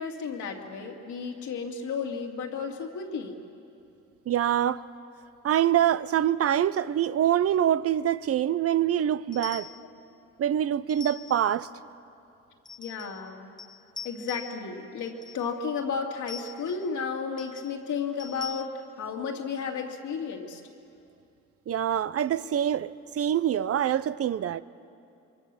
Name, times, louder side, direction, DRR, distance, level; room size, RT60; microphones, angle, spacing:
voice 1, 0.0-3.4 9.7-9.9 12.8-13.5 14.0-20.6, left 5 dB, 75° left, 2.7 m, -33 dB
voice 2, 4.3-4.8 5.4-9.7 10.4-11.7 21.7-24.6, right 10 dB, 50° right, 0.6 m, -25 dB
sound 1, 9.3-9.9 10.9-11.6 12.7-13.3 13.6-14.7 15.0-15.5 16.3-16.9 17.4-17.7 18.2-18.6, left 6 dB, 15° left, 0.6 m, -43 dB
26.5 x 23.0 x 7.0 m
cardioid pair, 90°, 30 cm